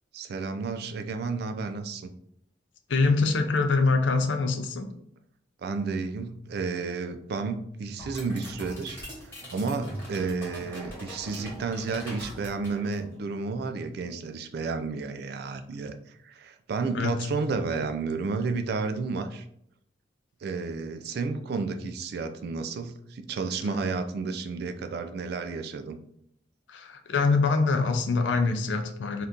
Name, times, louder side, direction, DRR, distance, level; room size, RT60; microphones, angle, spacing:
voice 1, 0.1-2.1 5.6-9.0 9.2-15.9 16.2-19.4 20.4-26.0, right 4 dB, 60° right, 8 dB, 0.3 m, -31 dB
voice 2, 2.9-4.9 16.9-17.3 26.7-29.3, left 3 dB, 75° left, 7 dB, 0.4 m, -24 dB
sound 1, 8.0-13.2, equal, 15° left, 1.2 m, -41 dB
2.7 x 2.4 x 3.5 m, 0.71 s
head